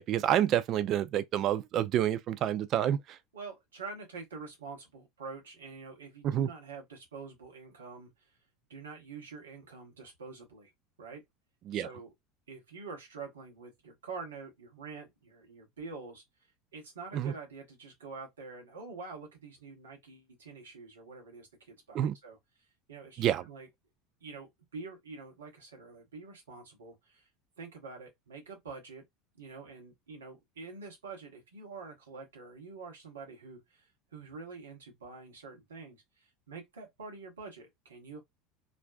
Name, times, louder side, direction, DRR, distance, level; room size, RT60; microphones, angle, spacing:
voice 1, 0.0-3.0 6.2-6.5 11.7-11.9 17.1-17.3 21.9-22.1 23.2-23.4, right 11 dB, 45° right, 0.3 m, -28 dB
voice 2, 3.3-8.3 8.7-10.7 11.0-11.2 11.7-12.1 12.5-16.2 16.7-22.4 22.9-23.7 24.2-27.3 27.6-29.0 29.3-38.2, right 4 dB, 80° right, 0.9 m, -46 dB
2.5 x 2.2 x 2.3 m
figure-of-eight pair, 75°, 0 cm